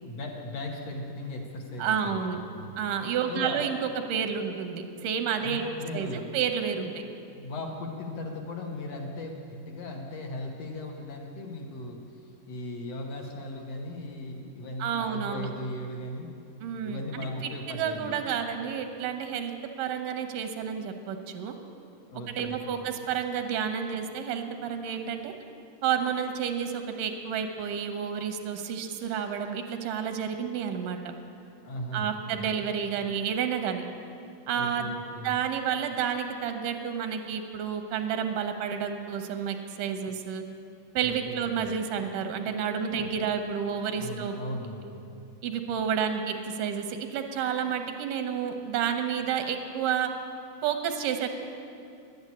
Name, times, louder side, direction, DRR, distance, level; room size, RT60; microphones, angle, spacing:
voice 1, 0.0-2.6 3.3-3.7 5.4-6.3 7.4-12.0 12.5-16.3 16.8-18.1 22.1-22.8 31.6-32.5 34.5-35.3 41.0-41.7 42.9-43.1 43.9-45.1, left 1 dB, 60° left, 1 dB, 2.1 m, -37 dB
voice 2, 1.8-2.4 2.8-5.6 5.9-7.0 14.8-15.5 16.6-21.6 22.3-25.3 25.8-31.1 31.9-33.9 34.5-34.9 35.2-40.4 40.9-44.4 45.4-50.1 50.6-51.3, right 7 dB, 85° right, 6 dB, 2.5 m, -30 dB
11.0 x 9.6 x 9.6 m, 2.5 s
omnidirectional pair, 3.7 m